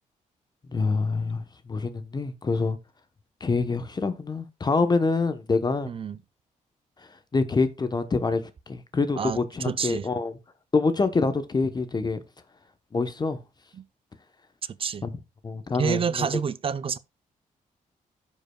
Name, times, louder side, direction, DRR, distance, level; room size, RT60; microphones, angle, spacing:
voice 1, 0.7-2.8 3.4-5.9 7.3-8.4 8.7-10.4 10.7-12.2 12.9-13.4 15.0-15.1 15.4-16.3, left 4 dB, 30° left, 0.8 m, -26 dB
voice 2, 5.9-6.2 9.2-10.1 13.7-13.8 14.8-15.0 15.8-17.0, right 6 dB, 40° right, 0.5 m, -28 dB
15.5 x 5.3 x 2.2 m
cardioid pair, 90°, 14 cm